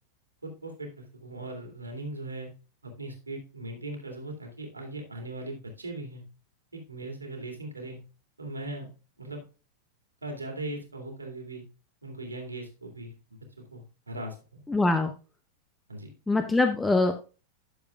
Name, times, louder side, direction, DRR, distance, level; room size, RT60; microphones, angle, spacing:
voice 1, 0.4-2.5 2.8-6.2 6.7-8.0 8.4-8.9 9.2-9.4 10.2-11.6 12.0-13.4 13.7-14.6 15.9-16.1, right 2 dB, 80° right, 2 dB, 2.5 m, -39 dB
voice 2, 14.7-15.1 16.3-17.1, left 2 dB, 10° left, 7 dB, 0.8 m, -23 dB
11.5 x 6.9 x 2.4 m, 0.33 s
figure-of-eight pair, 90°, 0 cm